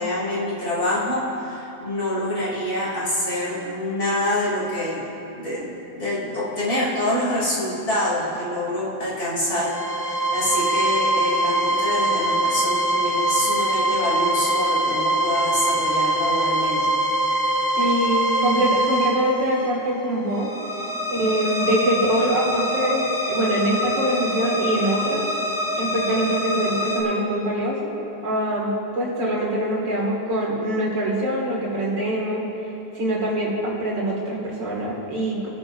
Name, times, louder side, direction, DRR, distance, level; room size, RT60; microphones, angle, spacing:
voice 1, 0.0-5.0 5.3-9.7 10.0-16.9, left 1 dB, 55° left, -8 dB, 3.8 m, -26 dB
sound 1, 9.6-27.0, right 1 dB, 35° left, 1.8 m, -24 dB
voice 2, 17.8-20.5 21.1-25.2 25.8-27.9 28.2-32.4 32.9-35.5, right 1 dB, 85° right, -4 dB, 3.0 m, -24 dB
28.0 x 9.5 x 2.7 m, 2.9 s
omnidirectional pair, 1.9 m